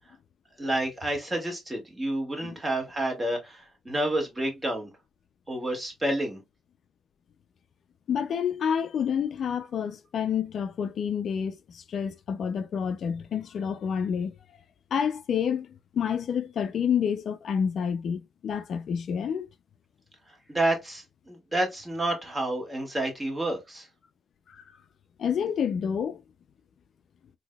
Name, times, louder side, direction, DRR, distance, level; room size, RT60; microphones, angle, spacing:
voice 1, 0.6-4.9 5.5-6.4 20.5-23.9, right 1 dB, 20° right, 1.7 m, -29 dB
voice 2, 8.1-14.3 14.9-19.5 24.5-24.6 25.2-26.2, left 7 dB, 60° left, 0.3 m, -29 dB
3.8 x 2.7 x 2.2 m
cardioid pair, 90°, 0 cm